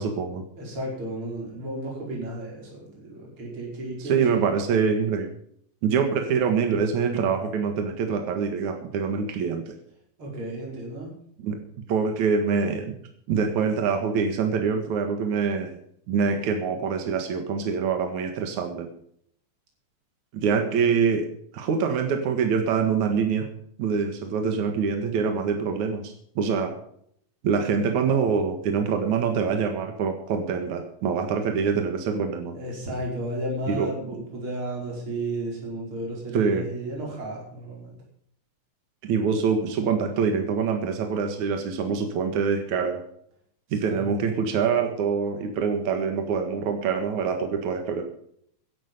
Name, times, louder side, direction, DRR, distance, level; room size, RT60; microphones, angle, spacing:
voice 1, 0.0-0.4 4.0-5.3 5.8-9.7 11.4-11.6 11.9-12.9 13.3-15.8 16.1-18.9 20.3-21.2 21.5-23.5 23.8-26.7 27.4-32.6 33.7-33.9 36.3-36.6 39.0-43.0 43.7-48.0, right 6 dB, 70° right, 5 dB, 3.1 m, -25 dB
voice 2, 0.6-4.5 10.2-11.1 32.5-38.0 43.7-44.3, right 1 dB, 40° right, -2 dB, 5.9 m, -33 dB
15.0 x 11.5 x 5.5 m, 0.66 s
omnidirectional pair, 3.5 m